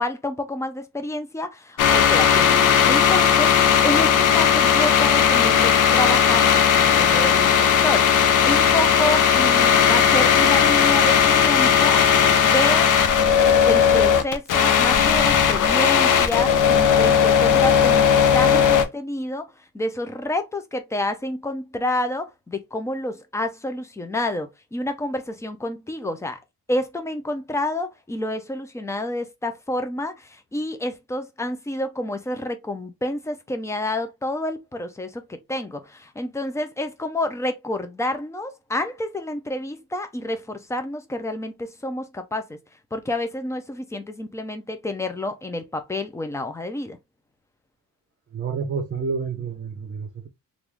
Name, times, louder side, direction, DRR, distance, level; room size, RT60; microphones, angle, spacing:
voice 1, 0.0-2.6 2.9-3.5 3.8-8.1 8.4-12.1 12.4-12.9 13.6-19.5 19.7-26.4 26.7-42.6 42.9-47.0, left 1 dB, 10° left, 0.5 m, -28 dB
sound 1, 1.8-18.8, left 7 dB, 65° left, 0.7 m, -17 dB
voice 2, 48.3-50.3, right 5 dB, 30° right, 0.7 m, -29 dB
3.5 x 2.6 x 3.0 m
cardioid pair, 155°, 34 cm